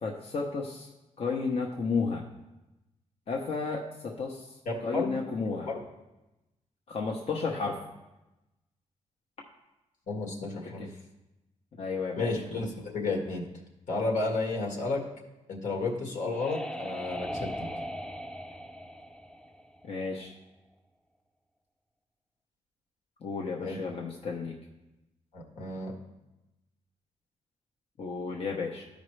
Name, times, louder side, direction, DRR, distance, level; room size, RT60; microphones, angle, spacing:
voice 1, 0.0-0.9 1.2-2.2 3.3-4.5 4.8-5.7 6.9-7.8 10.8-10.9 11.8-12.3 19.8-20.3 23.2-24.6 28.0-28.8, left 4 dB, 55° left, -1 dB, 0.9 m, -32 dB
voice 2, 4.7-5.1 5.6-5.8 10.1-10.9 12.2-13.5 13.9-15.0 15.5-17.7 23.6-23.8 25.3-25.9, left 3 dB, 80° left, -1 dB, 1.7 m, -32 dB
sound 1, 15.7-20.3, equal, 5° left, 0.5 m, -39 dB
13.0 x 5.2 x 3.2 m, 0.99 s
cardioid pair, 85°, 13 cm